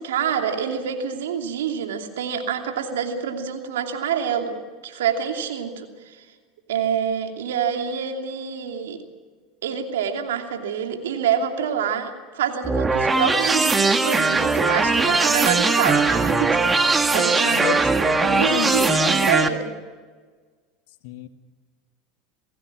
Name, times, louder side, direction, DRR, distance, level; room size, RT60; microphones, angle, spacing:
voice 1, 0.0-6.2 6.7-9.0 9.6-19.7, right 7 dB, 85° right, 4 dB, 2.8 m, -27 dB
sound 1, 12.6-19.5, right 3 dB, 15° right, 1.7 m, -20 dB
voice 2, 17.4-17.8 18.5-19.1 21.0-21.3, left 14 dB, 70° left, 8 dB, 1.7 m, -29 dB
27.5 x 17.0 x 6.1 m, 1.5 s
hypercardioid pair, 90°, 0 cm